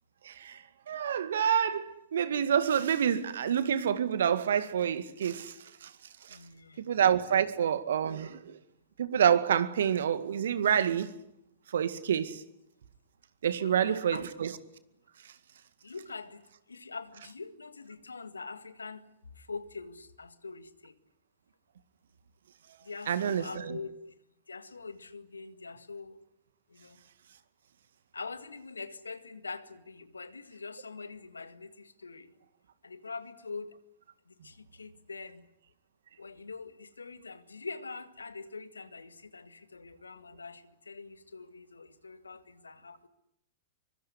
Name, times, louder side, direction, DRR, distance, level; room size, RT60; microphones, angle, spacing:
voice 1, 0.3-0.6 0.9-5.5 6.9-8.6 9.0-11.1 11.7-12.4 13.4-14.6 23.1-23.8, right 8 dB, 65° right, 2.0 m, -27 dB
voice 2, 6.3-6.8 13.6-14.2 15.8-16.4 16.7-19.0 19.5-20.9 22.9-23.9 24.5-26.1 26.8-27.0 28.1-31.7 32.0-32.3 32.8-33.7 34.4-35.4 36.2-43.1, left 4 dB, 80° left, 1.8 m, -43 dB
24.5 x 23.5 x 9.7 m
figure-of-eight pair, 100°, 0 cm